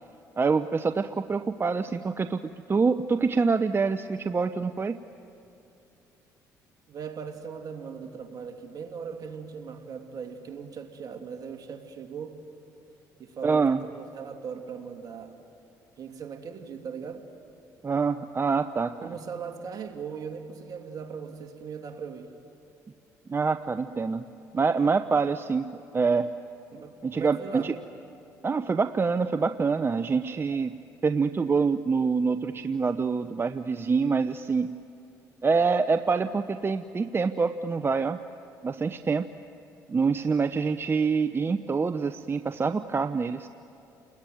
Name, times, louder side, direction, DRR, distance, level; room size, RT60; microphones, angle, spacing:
voice 1, 0.4-2.4 2.7-5.0 13.4-13.8 17.8-19.0 23.3-24.3 24.5-26.3 27.0-27.7 28.4-30.7 31.0-34.7 35.4-38.2 38.6-39.3 39.9-43.5, right 4 dB, 30° right, 11 dB, 0.8 m, -26 dB
voice 2, 6.9-12.4 13.2-15.4 16.0-17.3 18.9-22.3 26.7-27.7, right 6 dB, 55° right, 5 dB, 2.7 m, -39 dB
30.0 x 21.0 x 9.3 m, 2.7 s
supercardioid pair, 75°, 8 cm